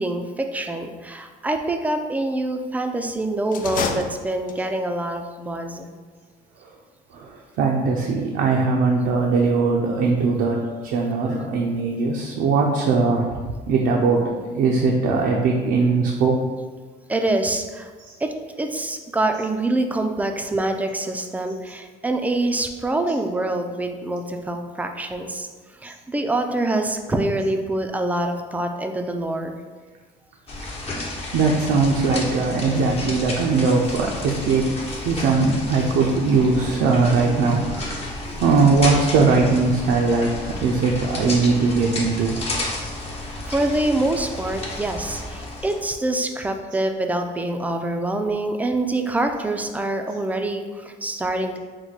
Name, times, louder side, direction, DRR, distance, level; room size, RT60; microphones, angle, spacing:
voice 1, 0.0-5.9 17.1-17.9 18.2-25.5 25.8-29.6 38.3-38.4 43.5-51.6, right 2 dB, 10° right, 5 dB, 0.3 m, -25 dB
sound 1, 3.5-4.8, left 5 dB, 55° left, 0.4 m, -29 dB
voice 2, 7.1-16.4 18.0-18.1 31.3-34.7 35.0-38.0 38.4-42.4, right 4 dB, 80° right, -1 dB, 0.5 m, -20 dB
sound 2, 30.5-45.8, left 2 dB, 35° left, 0.9 m, -31 dB
4.6 x 2.2 x 3.9 m, 1.4 s
cardioid pair, 110°, 17 cm